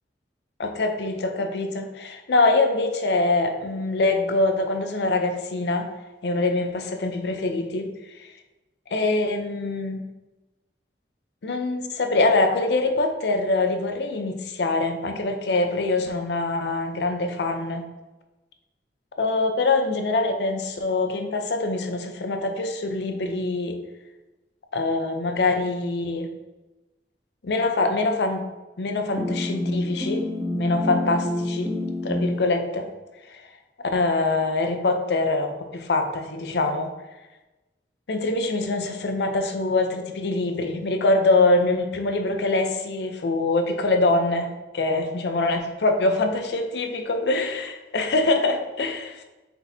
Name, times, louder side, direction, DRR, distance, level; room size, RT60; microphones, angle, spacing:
voice 1, 0.6-5.9 6.2-7.9 8.2-8.3 8.9-10.0 11.4-17.8 19.2-23.8 24.7-26.3 27.4-28.4 28.8-30.2 30.5-31.7 32.0-32.9 33.3-33.5 33.8-36.9 38.1-44.5 44.7-49.2, left 2 dB, 65° left, 6 dB, 0.5 m, -24 dB
sound 1, 29.1-32.4, left 1 dB, ahead, 0.4 m, -27 dB
4.5 x 4.1 x 2.7 m, 1.1 s
head